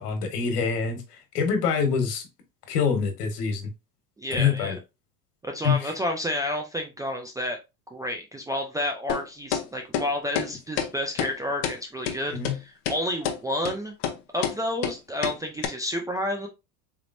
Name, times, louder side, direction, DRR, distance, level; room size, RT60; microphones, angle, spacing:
voice 1, 0.0-2.3 2.7-3.7 4.3-4.8 5.6-5.9 12.3-12.6, left 6 dB, 75° left, 1.5 m, -25 dB
voice 2, 4.2-4.8 5.4-7.6 7.9-12.6 12.9-13.9 14.3-16.5, left 1 dB, 10° right, 0.4 m, -30 dB
sound 1, 9.1-9.2 9.5-9.6 9.9-10.1 10.4-10.5 10.8-10.9 11.2-11.3 11.6-11.8 12.1-12.2 12.4-12.5 12.9-13.0 13.2-13.4 13.7-13.8 14.0-14.2 14.4-14.6 14.8-15.0 15.2-15.4 15.6-15.7, left 8 dB, 55° left, 1.0 m, -27 dB
4.1 x 3.5 x 2.6 m
supercardioid pair, 115°, 46 cm